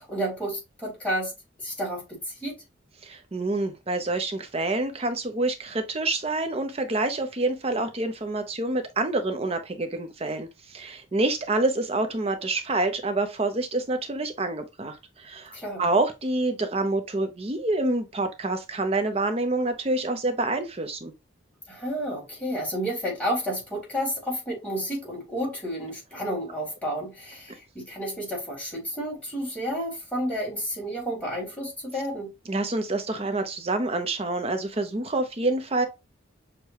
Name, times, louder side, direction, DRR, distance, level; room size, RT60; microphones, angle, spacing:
voice 1, 0.0-1.3 1.6-2.6 15.5-15.8 21.7-32.3, equal, 5° left, 1.7 m, -31 dB
voice 2, 3.0-21.1 32.5-35.9, right 2 dB, 30° right, 0.5 m, -27 dB
6.3 x 2.2 x 2.8 m
head